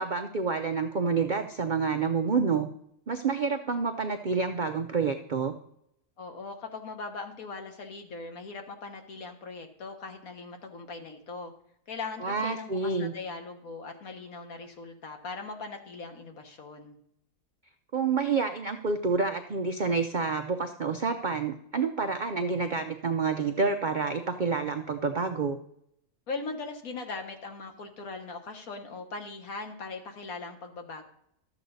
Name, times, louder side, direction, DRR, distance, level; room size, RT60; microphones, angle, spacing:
voice 1, 0.0-2.7 3.1-5.5 12.2-13.1 17.9-25.6, right 4 dB, 70° right, 6 dB, 0.4 m, -28 dB
voice 2, 6.2-11.5 11.9-17.0 26.3-31.1, left 4 dB, 60° left, 5 dB, 1.7 m, -40 dB
12.5 x 8.2 x 4.0 m, 0.72 s
omnidirectional pair, 1.7 m